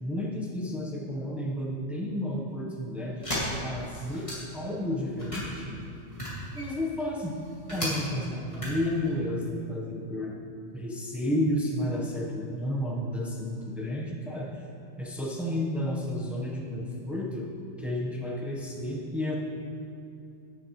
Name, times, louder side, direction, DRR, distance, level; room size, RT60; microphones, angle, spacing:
voice 1, 0.0-4.3 4.5-5.8 6.5-7.3 7.7-10.3 10.7-14.5 15.0-17.5 17.8-19.3, left 1 dB, ahead, -2 dB, 1.0 m, -31 dB
sound 1, 3.2-4.7 5.1-7.9 8.4-9.1, left 1 dB, 25° left, 2.4 m, -35 dB
11.0 x 10.5 x 3.2 m, 2.6 s
omnidirectional pair, 1.4 m